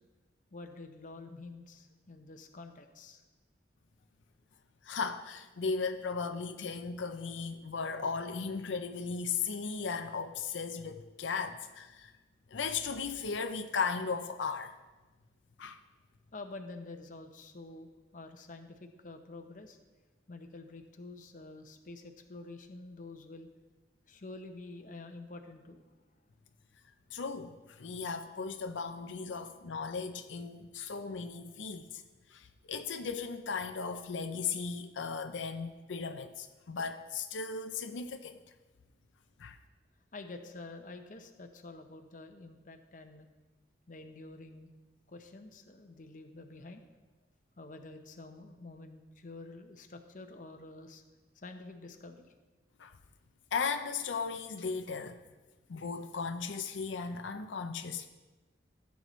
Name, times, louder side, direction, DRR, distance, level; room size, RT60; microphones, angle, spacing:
voice 1, 0.5-3.2 16.3-19.8 20.3-23.5 24.1-25.9 40.1-43.3 43.9-44.7 45.1-46.8 47.6-51.0 51.3-52.3, left 2 dB, 45° left, 6 dB, 0.8 m, -48 dB
voice 2, 4.8-12.1 12.5-14.7 15.6-15.8 27.1-32.0 32.3-38.4 39.4-39.6 52.8-52.9 53.5-55.2 55.7-58.1, left 5 dB, 85° left, 8 dB, 0.5 m, -36 dB
15.0 x 8.3 x 3.1 m, 1.2 s
head